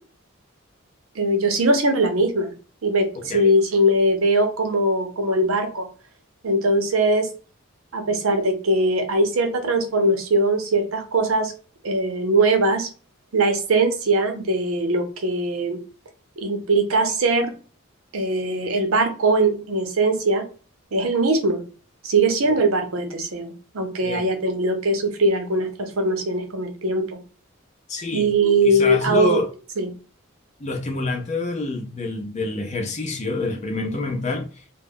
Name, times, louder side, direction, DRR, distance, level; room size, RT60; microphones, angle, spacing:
voice 1, 1.2-2.5 2.8-3.1 3.3-5.9 6.4-7.3 7.9-11.5 11.8-12.9 13.3-15.8 16.4-17.5 18.1-20.4 20.9-21.6 22.0-27.2 28.1-29.4 29.8-29.9, right 2 dB, 85° right, 0.6 m, -21 dB
voice 2, 3.1-3.5 22.5-22.6 24.0-24.3 27.9-28.3 28.6-29.5 30.6-34.5, left 2 dB, 35° left, 0.5 m, -27 dB
2.3 x 2.0 x 3.4 m
head